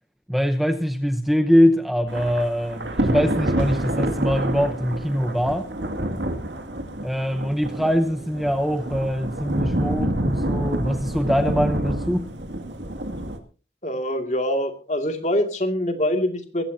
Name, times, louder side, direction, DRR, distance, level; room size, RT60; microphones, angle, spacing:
voice 1, 0.3-5.7 7.0-12.3, equal, ahead, 0.7 m, -23 dB
Thunder / Rain, 2.1-13.4, right 1 dB, 80° right, 2.3 m, -27 dB
voice 2, 13.8-16.6, left 1 dB, 40° left, 2.4 m, -24 dB
21.5 x 16.0 x 2.8 m
head